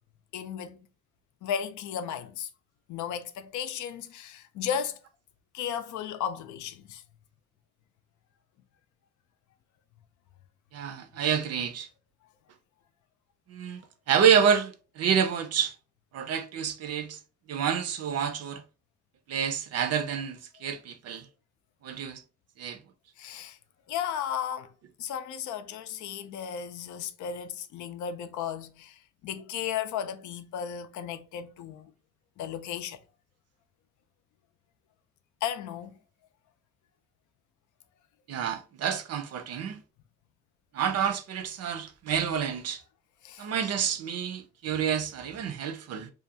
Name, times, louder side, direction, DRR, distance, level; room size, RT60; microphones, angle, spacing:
voice 1, 0.3-0.9 1.4-2.5 2.9-5.0 5.5-7.0 23.2-23.6 23.9-24.7 25.0-31.9 32.4-33.0 35.4-36.0 43.2-43.5, left 8 dB, 75° left, 0.4 m, -35 dB
voice 2, 10.7-11.9 13.5-13.8 14.1-15.7 16.1-17.2 17.5-18.6 19.3-21.2 21.8-22.2 22.6-22.8 38.3-39.8 40.7-42.8 43.4-46.1, right 7 dB, 55° right, 0.5 m, -28 dB
2.5 x 2.2 x 2.7 m
cardioid pair, 90°, 30 cm